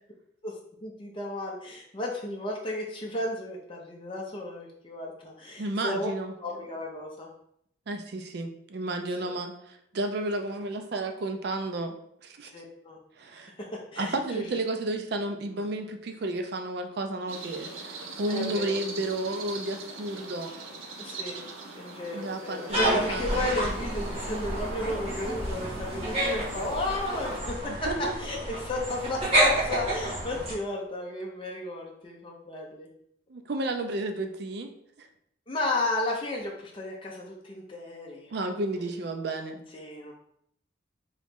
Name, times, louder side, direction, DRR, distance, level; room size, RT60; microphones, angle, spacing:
voice 1, 0.4-6.1 6.4-7.3 9.2-9.3 12.5-13.0 13.6-14.5 18.3-18.8 21.0-21.4 21.8-32.9 35.5-38.3 39.7-40.1, left 1 dB, 25° left, -2 dB, 0.5 m, -33 dB
voice 2, 5.6-6.3 7.9-11.9 12.2-12.5 13.2-13.5 14.0-20.5 22.1-23.5 27.9-28.2 33.3-34.7 35.0-35.1 38.3-39.6, right 2 dB, 55° right, 6 dB, 0.4 m, -32 dB
sound 1, 17.3-27.4, right 3 dB, 90° right, 0.7 m, -42 dB
sound 2, 22.7-30.5, right 1 dB, 30° right, 1.4 m, -29 dB
3.8 x 3.0 x 3.5 m, 0.71 s
head